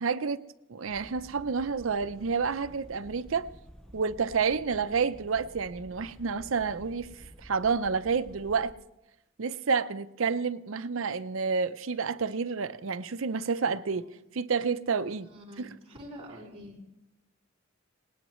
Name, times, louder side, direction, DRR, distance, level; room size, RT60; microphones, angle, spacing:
voice 1, 0.0-0.4 0.7-3.5 3.9-7.1 7.4-8.7 9.4-14.1 14.3-15.3 15.6-15.7, right 5 dB, 90° right, 0.6 m, -29 dB
sound 1, 0.9-8.7, equal, 5° left, 0.7 m, -51 dB
voice 2, 13.6-14.0 15.2-16.8, equal, 30° right, 4.4 m, -47 dB
19.0 x 19.0 x 3.1 m
head